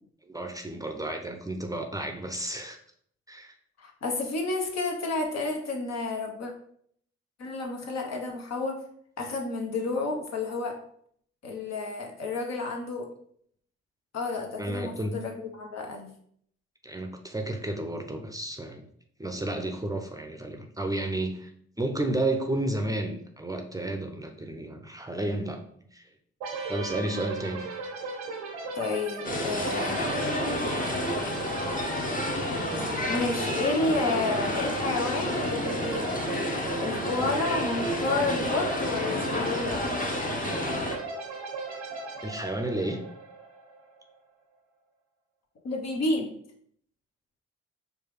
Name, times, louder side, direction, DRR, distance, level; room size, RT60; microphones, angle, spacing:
voice 1, 0.2-2.8 3.3-3.5 14.6-15.2 16.8-18.9 19.2-21.5 21.8-25.6 25.9-26.0 26.7-27.8 42.2-43.0, right 1 dB, 10° right, 4 dB, 0.6 m, -32 dB
voice 2, 3.8-6.5 7.4-8.8 9.2-10.8 11.4-13.1 14.1-16.1 28.7-30.0 33.1-36.1 36.8-39.9 45.6-46.3, left 3 dB, 55° left, 2 dB, 0.9 m, -30 dB
sound 1, 26.4-44.0, right 3 dB, 85° right, 0.8 m, -37 dB
sound 2, 29.2-41.0, left 1 dB, 25° left, 0.9 m, -30 dB
4.6 x 2.3 x 3.2 m, 0.65 s
hypercardioid pair, 40°, 31 cm